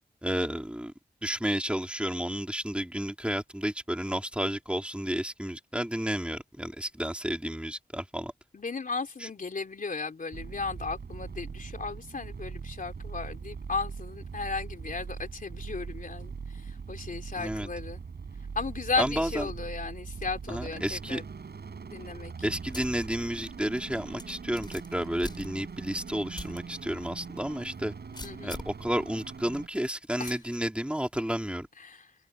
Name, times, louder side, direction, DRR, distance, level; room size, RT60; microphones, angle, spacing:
voice 1, 0.2-0.9 1.2-8.3 17.4-17.7 19.0-19.4 20.5-21.2 22.4-27.9 28.4-31.7, equal, 5° right, 3.1 m, -31 dB
voice 2, 8.5-18.0 18.5-21.2 21.9-22.3 28.2-28.6 30.2-30.4 31.8-32.1, left 4 dB, 55° left, 3.4 m, -35 dB
sound 1, 10.3-29.7, right 5 dB, 85° right, 4.1 m, -41 dB
sound 2, 22.7-23.1 23.5-23.6 24.2-25.9 26.3-26.6 27.0-27.1 28.1-28.8 30.3-30.6, left 2 dB, 25° left, 6.4 m, -42 dB
wide cardioid pair, 120°, 17 cm